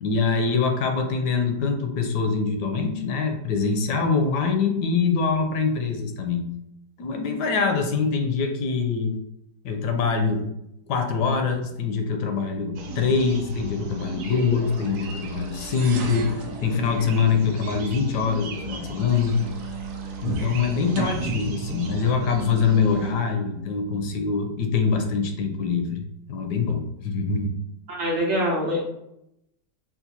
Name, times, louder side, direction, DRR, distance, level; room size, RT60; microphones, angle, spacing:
voice 1, 0.0-6.5 7.0-9.2 9.6-10.5 10.9-19.4 20.2-27.6, left 5 dB, 75° left, 4 dB, 1.1 m, -24 dB
sound 1, 12.7-23.1, right 4 dB, 85° right, 1.3 m, -33 dB
voice 2, 27.9-28.8, equal, 65° right, -3 dB, 0.8 m, -24 dB
3.8 x 2.4 x 2.8 m, 0.81 s
omnidirectional pair, 1.9 m